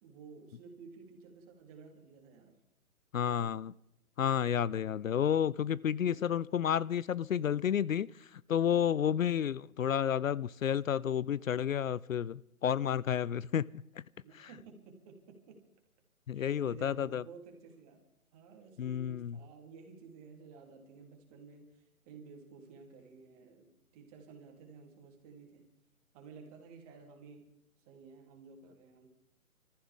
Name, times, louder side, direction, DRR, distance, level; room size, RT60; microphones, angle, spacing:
voice 1, 0.0-2.6 3.2-3.5 6.1-6.4 9.0-9.3 14.1-15.6 16.3-18.0 18.3-25.6 26.1-27.5 27.8-29.1, right 5 dB, 25° right, 2 dB, 3.2 m, -54 dB
voice 2, 3.1-3.7 4.2-13.6 14.4-14.5 16.3-17.2 18.8-19.4, left 9 dB, 70° left, 22 dB, 0.5 m, -31 dB
28.0 x 14.5 x 3.6 m, 0.82 s
figure-of-eight pair, 135°, 42 cm